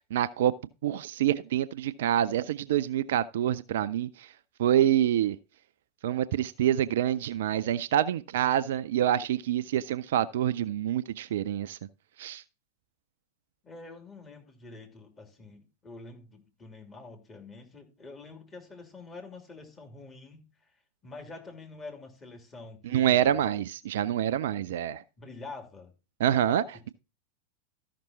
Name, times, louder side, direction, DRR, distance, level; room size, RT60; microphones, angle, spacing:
voice 1, 0.1-0.5 0.8-4.3 4.6-5.4 6.0-11.8 12.2-12.4 22.8-25.0 26.2-26.9, right 11 dB, 55° right, 0.4 m, -26 dB
voice 2, 13.6-20.7 21.0-23.5 25.2-25.9, left 3 dB, 20° left, 3.0 m, -46 dB
13.5 x 6.0 x 3.9 m
figure-of-eight pair, 90°, 0 cm